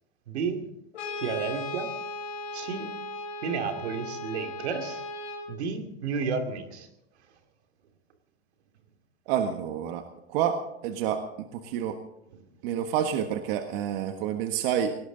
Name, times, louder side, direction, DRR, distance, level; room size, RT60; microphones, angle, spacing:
voice 1, 0.3-0.7 1.2-1.9 2.5-2.9 3.4-5.0 5.5-6.9 12.3-12.4, right 5 dB, 85° right, 6 dB, 2.6 m, -32 dB
Brass instrument, 0.9-5.5, left 2 dB, 85° left, 5.9 m, -37 dB
voice 2, 9.3-11.2 11.5-12.0 12.6-14.9, right 9 dB, 65° right, 6 dB, 1.6 m, -28 dB
19.5 x 18.5 x 4.0 m, 0.80 s
supercardioid pair, 120°, 32 cm